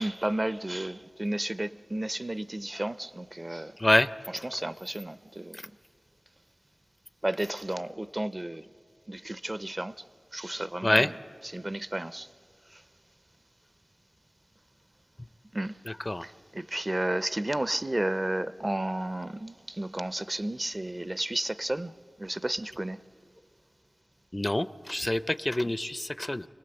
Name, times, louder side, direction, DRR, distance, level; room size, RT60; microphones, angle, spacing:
voice 1, 0.0-3.8 4.3-5.7 7.2-8.7 9.1-9.9 10.3-11.2 11.4-12.3 12.7-12.8 15.5-15.8 16.2-21.9 22.2-23.0 25.6-25.7, right 1 dB, 30° right, 15 dB, 0.5 m, -32 dB
voice 2, 24.3-26.5, left 1 dB, 25° left, 16 dB, 0.5 m, -26 dB
25.5 x 18.5 x 7.8 m, 2.3 s
wide cardioid pair, 45°, 0 cm